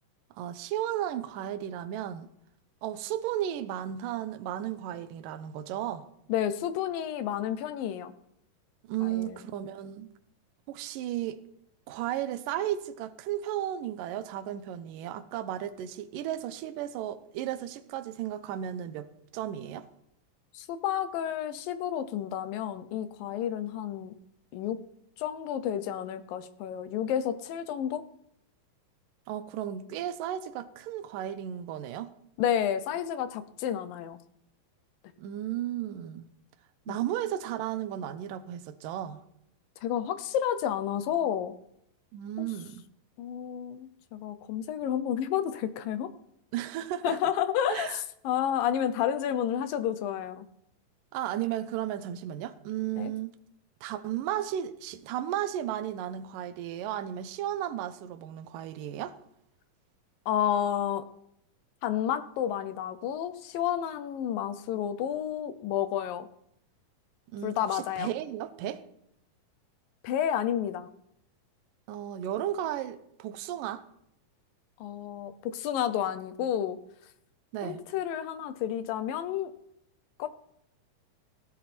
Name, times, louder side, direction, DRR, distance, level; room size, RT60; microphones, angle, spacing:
voice 1, 0.4-2.3 2.8-6.0 8.9-10.1 10.7-11.4 11.9-19.9 29.3-32.1 35.2-36.3 36.9-39.2 42.1-42.8 46.5-47.2 47.7-48.0 51.1-53.3 53.8-59.2 67.3-68.8 71.9-73.8 77.5-77.8, right 11 dB, 75° right, 2.4 m, -34 dB
voice 2, 6.3-8.1 9.0-9.4 20.5-24.1 24.5-24.8 25.2-28.0 32.4-34.2 36.9-37.0 39.8-41.5 42.4-42.5 43.2-46.1 47.0-50.5 53.0-53.1 60.3-61.0 61.8-66.3 67.4-68.1 70.0-70.9 74.8-76.8 77.6-79.5 80.2-80.3, left 10 dB, 80° left, 2.5 m, -30 dB
17.0 x 12.5 x 4.3 m
omnidirectional pair, 4.1 m